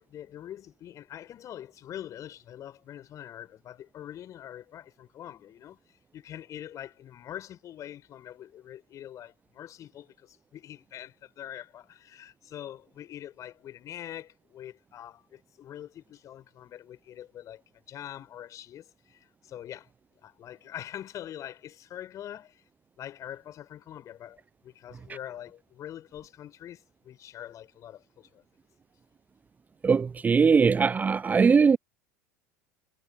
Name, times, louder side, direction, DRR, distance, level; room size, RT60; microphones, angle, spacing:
voice 1, 0.0-5.8 6.1-17.6 17.9-19.9 20.2-22.6 23.0-28.4, left 11 dB, 35° left, 7.4 m, -44 dB
voice 2, 29.8-31.8, right 5 dB, 20° right, 0.6 m, -21 dB
figure-of-eight pair, 75°, 9 cm